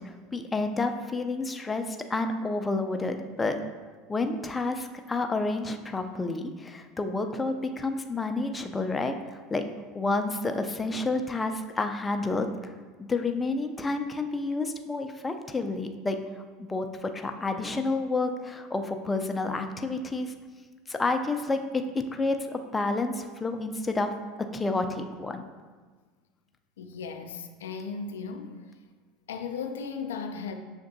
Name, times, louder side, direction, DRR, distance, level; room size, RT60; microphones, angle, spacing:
voice 1, 0.0-3.6 4.1-9.2 9.5-9.6 9.9-12.7 13.0-16.2 16.6-20.3 20.9-21.8 22.1-24.1 24.4-25.4, left 3 dB, 15° left, 6 dB, 0.4 m, -30 dB
voice 2, 26.8-28.6 29.3-30.5, left 5 dB, 90° left, 6 dB, 0.3 m, -36 dB
6.6 x 2.6 x 2.6 m, 1.4 s
hypercardioid pair, 90°, 0 cm